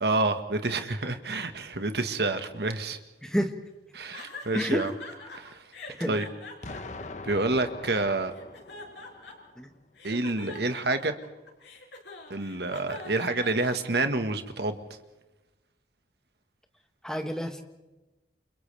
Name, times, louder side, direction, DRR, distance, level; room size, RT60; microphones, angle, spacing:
voice 1, 0.0-3.0 3.9-4.9 5.3-5.6 6.0-6.3 7.2-8.3 10.0-11.1 12.3-14.8, right 2 dB, 70° right, 8 dB, 1.7 m, -28 dB
voice 2, 3.2-3.5 4.5-4.8 6.0-6.2 9.6-9.7 17.0-17.6, equal, 5° left, 5 dB, 1.6 m, -29 dB
sound 1, 4.1-5.4 5.7-7.9 8.3-9.6 10.0-14.2, left 3 dB, 85° left, 5.2 m, -43 dB
Explosion, 6.6-9.6, left 2 dB, 40° left, 1.0 m, -42 dB
29.5 x 28.0 x 3.5 m, 1.1 s
head